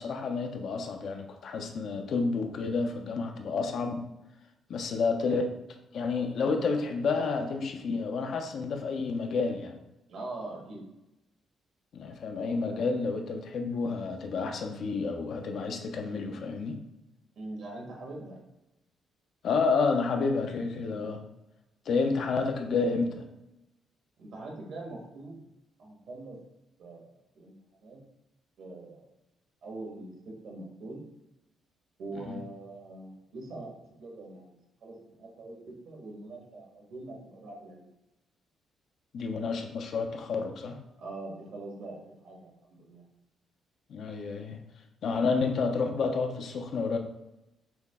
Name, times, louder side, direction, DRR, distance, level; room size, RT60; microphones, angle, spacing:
voice 1, 0.0-4.0 4.7-5.5 5.9-9.8 11.9-16.8 19.4-21.2 21.9-23.2 32.2-32.4 39.1-40.8 43.9-44.6 45.0-47.0, left 4 dB, 65° left, 5 dB, 0.6 m, -30 dB
voice 2, 10.1-10.8 17.3-18.4 24.2-25.5 25.8-26.4 26.8-27.5 27.8-28.0 28.6-29.1 29.6-31.0 32.0-33.7 34.0-34.5 34.8-37.8 41.0-43.0, right 2 dB, 70° right, -1 dB, 1.5 m, -43 dB
6.0 x 2.2 x 3.5 m, 0.92 s
cardioid pair, 90°, 0 cm